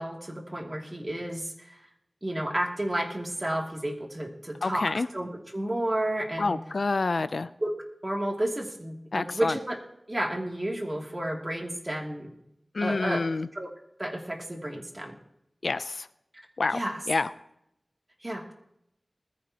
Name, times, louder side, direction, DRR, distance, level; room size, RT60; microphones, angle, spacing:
voice 1, 0.0-1.5 2.2-6.6 7.6-7.7 8.0-9.8 10.1-12.3 12.8-13.2 13.5-13.7 14.0-15.1 16.7-17.0 18.2-18.5, right 1 dB, 35° right, 0 dB, 2.7 m, -31 dB
voice 2, 4.6-5.1 6.4-7.5 9.1-9.5 12.7-13.5 15.6-16.1 16.6-16.8 17.1-17.3, left 3 dB, 85° left, 13 dB, 0.5 m, -27 dB
20.0 x 14.5 x 2.9 m, 0.80 s
wide cardioid pair, 45°, 0 cm